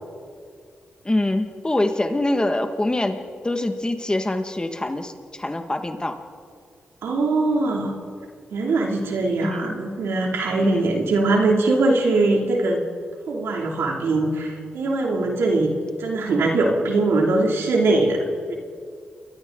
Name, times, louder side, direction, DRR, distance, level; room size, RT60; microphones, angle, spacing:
voice 1, 1.1-3.2 3.4-6.1 9.4-9.7 10.6-10.9, left 1 dB, 20° left, 6 dB, 1.9 m, -24 dB
voice 2, 7.0-7.9 8.5-12.8 13.3-18.5, right 2 dB, 85° right, 1 dB, 2.9 m, -21 dB
29.0 x 22.5 x 4.0 m, 2.2 s
cardioid pair, 60°, 4 cm